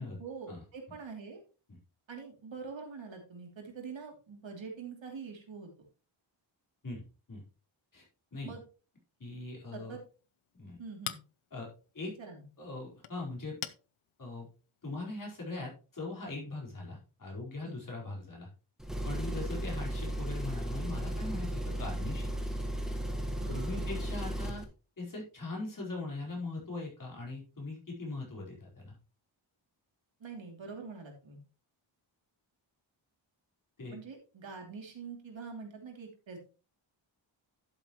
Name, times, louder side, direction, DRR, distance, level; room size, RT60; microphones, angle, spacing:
voice 1, 0.0-1.4 2.1-5.7 8.4-8.6 9.7-10.0 10.8-11.2 12.2-12.4 17.6-17.8 23.4-24.0 30.2-31.4 33.9-36.4, right 5 dB, 65° right, 2 dB, 3.1 m, -45 dB
voice 2, 6.8-7.4 7.9-8.0 8.3-8.5 9.2-10.0 10.5-10.8 11.5-11.7 11.9-12.1 12.6-13.6 14.2-14.5 14.8-18.5 19.0-22.3 23.5-24.6 25.0-29.0 33.8-33.9, left 2 dB, 40° left, -3 dB, 4.8 m, -40 dB
Chink clink, 9.8-15.3, left 10 dB, 80° left, 0.8 m, -48 dB
Engine, 18.8-24.6, right 1 dB, ahead, 1.5 m, -35 dB
11.5 x 7.9 x 3.1 m, 0.35 s
wide cardioid pair, 180°, 48 cm